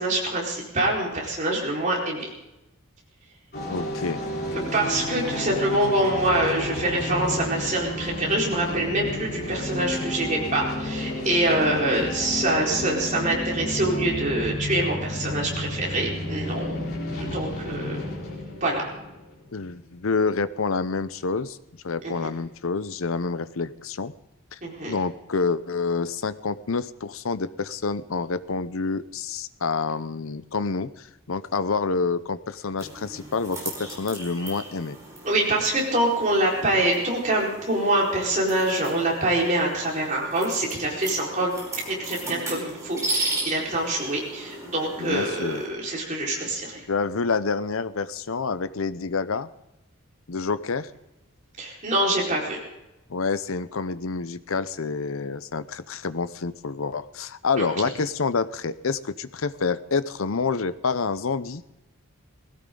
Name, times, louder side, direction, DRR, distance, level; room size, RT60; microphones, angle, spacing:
voice 1, 0.0-2.3 4.7-16.8 17.2-18.0 18.6-18.9 22.0-22.3 24.6-24.9 35.2-41.5 41.9-46.8 51.6-52.6 57.6-57.7, right 1 dB, 35° right, -2 dB, 4.5 m, -25 dB
sound 1, 3.5-19.9, left 1 dB, 45° left, 3.9 m, -31 dB
voice 2, 3.7-4.2 19.5-21.6 21.8-24.1 24.5-24.6 24.8-35.0 45.0-45.6 46.9-49.5 50.3-50.9 53.1-61.6, left 4 dB, 70° left, 15 dB, 0.7 m, -28 dB
sound 2, 32.8-45.7, right 2 dB, 15° right, 5.0 m, -36 dB
20.0 x 16.5 x 3.8 m, 0.96 s
head